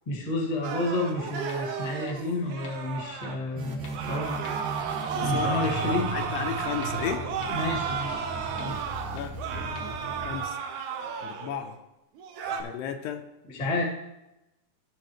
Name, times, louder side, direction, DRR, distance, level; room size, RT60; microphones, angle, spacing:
voice 1, 0.0-4.5 5.2-6.2 7.5-8.3 8.6-8.8 13.5-13.8, left 2 dB, 30° left, -2 dB, 0.8 m, -30 dB
sound 1, 0.6-3.4 3.9-11.7 12.2-12.6, right 7 dB, 85° right, 1.8 m, -33 dB
sound 2, 1.5-1.6 2.1-2.2 2.6-2.7 3.2-3.3 3.8-3.9 4.4-4.5 5.0-5.1 5.6-5.7 6.2-6.3 6.8-6.9 7.4-7.5 8.0-8.1 8.6-8.7 9.2-9.3 9.8-9.9, left 5 dB, 70° left, 1.7 m, -47 dB
sound 3, 3.5-10.4, right 2 dB, 60° right, 2.4 m, -37 dB
voice 2, 5.1-7.3 9.1-9.3 10.2-10.6 11.2-11.8 12.6-13.2, left 9 dB, 85° left, 6 dB, 2.8 m, -34 dB
16.0 x 5.8 x 3.1 m, 0.92 s
omnidirectional pair, 4.8 m